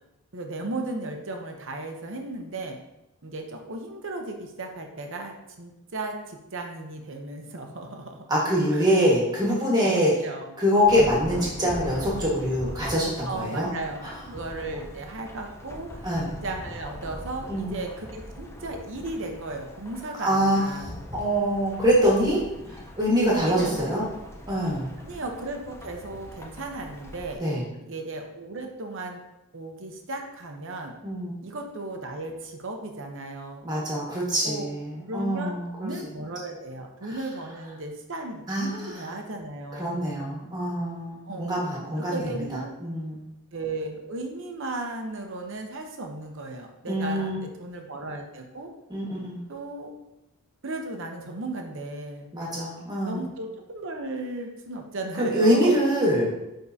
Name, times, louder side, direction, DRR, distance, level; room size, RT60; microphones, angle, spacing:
voice 1, 0.3-2.8 3.2-8.2 8.7-9.0 9.8-10.0 10.2-10.6 13.3-16.1 16.4-21.0 22.1-22.2 23.3-24.3 25.1-27.4 27.8-29.2 29.5-30.9 31.4-33.7 34.4-34.7 35.1-40.1 41.3-41.6 42.1-42.8 43.5-48.7 49.5-49.9 50.6-52.3 53.1-55.9, right 2 dB, 60° right, 3 dB, 0.8 m, -35 dB
voice 2, 8.3-10.1 10.6-13.7 16.0-16.3 17.5-17.8 20.2-22.4 23.0-24.0 24.5-24.9 27.4-27.6 31.0-31.3 33.6-35.9 38.5-39.1 39.7-42.4 42.8-43.2 46.9-47.4 48.9-49.4 52.3-53.2 55.2-56.3, equal, 20° right, -5 dB, 1.6 m, -24 dB
Thunderstorm / Rain, 10.8-27.4, equal, 10° left, 0.5 m, -41 dB
9.5 x 3.8 x 2.8 m, 0.92 s
head